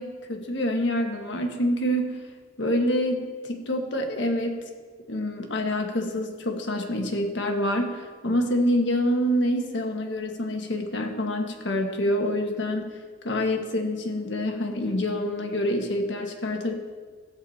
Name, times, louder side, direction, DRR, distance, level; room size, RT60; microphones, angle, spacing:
voice 1, 0.0-2.2 2.6-4.5 5.1-12.9 13.2-16.7, left 1 dB, 65° left, 2 dB, 1.4 m, -26 dB
14.0 x 8.0 x 4.2 m, 1.5 s
head